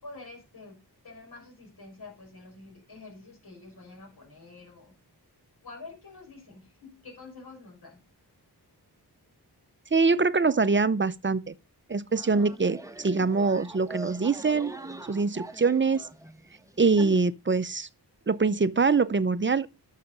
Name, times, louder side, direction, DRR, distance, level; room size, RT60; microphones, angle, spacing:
voice 1, 0.0-0.8 1.0-4.9 5.6-8.0, left 3 dB, 65° left, 5.2 m, -47 dB
voice 2, 9.9-11.5 11.9-14.7 15.1-16.1 16.8-17.9 18.3-19.7, right 4 dB, 30° right, 0.6 m, -24 dB
sound 1, 12.1-17.2, right 2 dB, 10° right, 0.9 m, -43 dB
11.5 x 6.6 x 5.2 m
wide cardioid pair, 110°, 40 cm